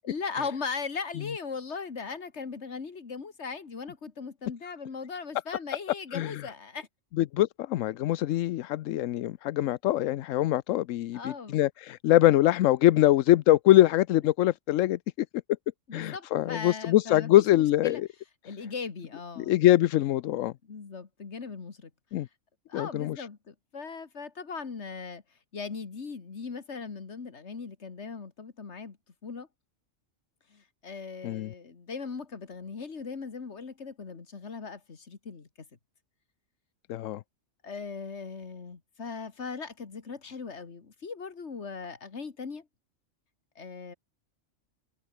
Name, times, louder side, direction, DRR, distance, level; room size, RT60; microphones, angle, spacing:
voice 1, 0.0-6.9 11.1-11.6 15.9-18.0 18.4-19.5 20.6-21.9 22.7-25.2 25.5-29.0 29.2-29.5 30.5-35.5 37.6-42.7 43.6-43.9, left 5 dB, 65° left, 2.2 m, -39 dB
voice 2, 6.1-6.5 7.2-15.3 15.9-18.1 19.4-20.5 22.1-22.3 22.7-23.3 31.2-31.5 36.9-37.2, left 14 dB, 85° left, 1.0 m, -23 dB
omnidirectional pair, 1.3 m